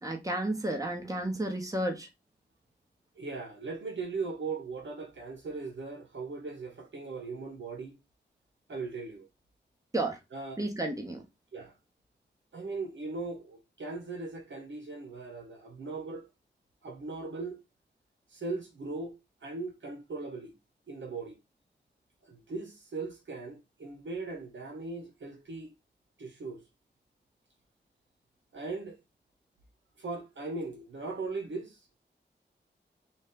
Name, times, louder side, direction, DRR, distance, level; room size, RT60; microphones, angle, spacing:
voice 1, 0.0-2.1 9.9-10.2 10.6-11.2, right 1 dB, 20° right, 1.1 m, -32 dB
voice 2, 3.2-7.9 8.7-9.3 10.3-10.6 11.5-11.7 12.5-16.3 16.8-17.6 18.3-19.2 19.4-20.5 20.9-21.4 22.3-25.7 26.2-26.6 28.5-29.0 30.0-32.0, right 3 dB, 80° right, 0.9 m, -39 dB
4.0 x 2.4 x 3.5 m
wide cardioid pair, 50°, 19 cm